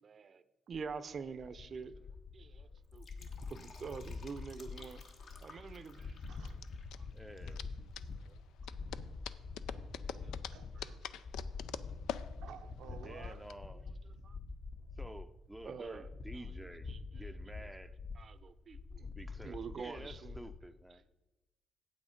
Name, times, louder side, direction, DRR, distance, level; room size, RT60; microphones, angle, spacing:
voice 1, 0.0-2.1 2.3-5.0 5.4-6.2 7.0-7.1 8.3-8.4 9.9-10.5 14.1-14.4 15.6-16.5 16.9-17.3 18.2-19.1 19.4-20.5, right 5 dB, 45° right, 0.6 m, -47 dB
sound 1, 0.7-20.6, left 4 dB, 45° left, 0.8 m, -46 dB
Fill (with liquid), 2.8-7.6 7.8-7.9, left 4 dB, 65° left, 1.2 m, -58 dB
sound 2, 4.6-13.5, left 10 dB, 85° left, 0.4 m, -46 dB
voice 2, 6.0-6.6 7.4-7.6 8.2-8.3 10.5-11.2 12.1-13.6, right 8 dB, 85° right, 0.8 m, -55 dB
voice 3, 7.1-7.6 12.9-13.8 15.0-18.0 19.1-21.0, right 1 dB, 5° right, 0.5 m, -50 dB
8.6 x 8.0 x 5.1 m
cardioid pair, 90°, 0 cm